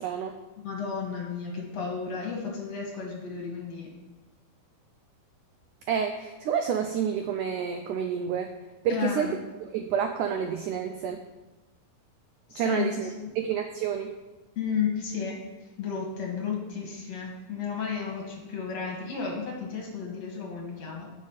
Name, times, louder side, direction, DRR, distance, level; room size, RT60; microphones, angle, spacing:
voice 1, 0.0-0.4 5.9-8.5 8.8-11.2 12.6-13.1 13.4-14.1, right 8 dB, 80° right, 6 dB, 1.8 m, -29 dB
voice 2, 0.6-3.9 8.9-9.3 12.5-13.4 14.6-15.4 15.8-21.1, left 6 dB, 50° left, -1 dB, 2.7 m, -33 dB
9.8 x 6.6 x 7.3 m, 1.2 s
omnidirectional pair, 4.3 m